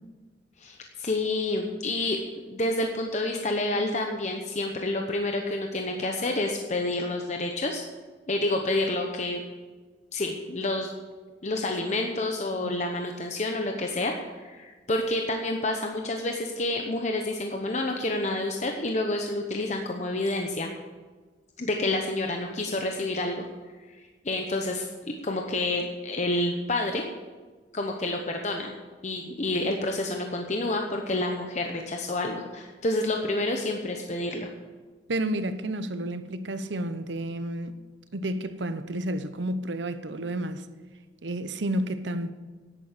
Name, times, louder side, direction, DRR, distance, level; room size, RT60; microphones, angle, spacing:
voice 1, 0.6-2.2 2.5-7.8 8.3-9.4 10.1-10.9 11.4-20.7 21.6-23.5 24.2-27.0 27.7-28.8 29.0-34.5, left 2 dB, 40° left, 0.9 m, -29 dB
voice 2, 35.1-37.8 38.1-40.7 41.2-42.3, right 1 dB, 85° right, 0.8 m, -31 dB
10.0 x 9.2 x 8.2 m
head